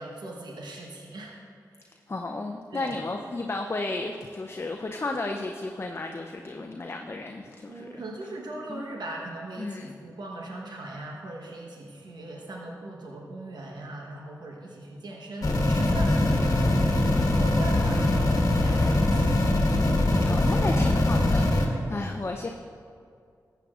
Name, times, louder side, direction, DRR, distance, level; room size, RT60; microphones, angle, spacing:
voice 1, 0.0-1.4 2.7-2.9 7.7-19.4 21.7-21.9, right 2 dB, 75° right, -2 dB, 1.1 m, -40 dB
voice 2, 2.1-7.9 8.7-8.8 9.6-10.0 20.2-22.5, left 2 dB, 35° left, 3 dB, 0.5 m, -33 dB
sound 1, 15.4-21.7, left 1 dB, 55° left, 1.4 m, -22 dB
14.5 x 8.0 x 2.4 m, 2.3 s
cardioid pair, 45°, 7 cm